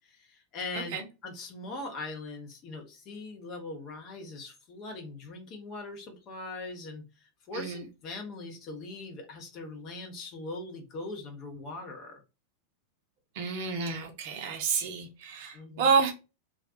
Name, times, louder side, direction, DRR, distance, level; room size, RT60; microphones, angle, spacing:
voice 1, 0.0-12.2 15.5-15.9, left 2 dB, 35° left, 3 dB, 0.7 m, -41 dB
voice 2, 7.5-7.9 13.3-16.1, right 5 dB, 50° right, 4 dB, 0.6 m, -29 dB
2.4 x 2.2 x 2.6 m, 0.28 s
figure-of-eight pair, 90°, 0 cm